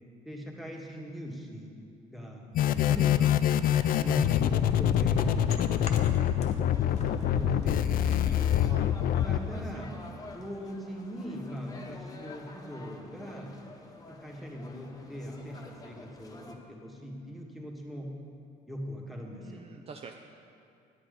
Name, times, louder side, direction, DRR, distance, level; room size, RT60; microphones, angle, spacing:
voice 1, 0.2-1.7 2.1-2.5 2.7-3.4 4.0-6.4 7.3-8.2 9.2-13.6 14.1-18.1 18.7-19.6, equal, ahead, -1 dB, 1.6 m, -40 dB
sound 1, 2.5-9.4, left 10 dB, 60° left, 0.5 m, -25 dB
sound 2, 3.7-6.7 6.9-9.3, left 4 dB, 40° left, 1.1 m, -45 dB
voice 2, 3.8-4.1 8.6-8.9 19.4-20.1, right 5 dB, 35° right, 3 dB, 0.6 m, -46 dB
sound 3, 6.7-16.6, left 2 dB, 20° left, 1.1 m, -49 dB
10.5 x 8.6 x 5.2 m, 2.4 s
cardioid pair, 110°, 17 cm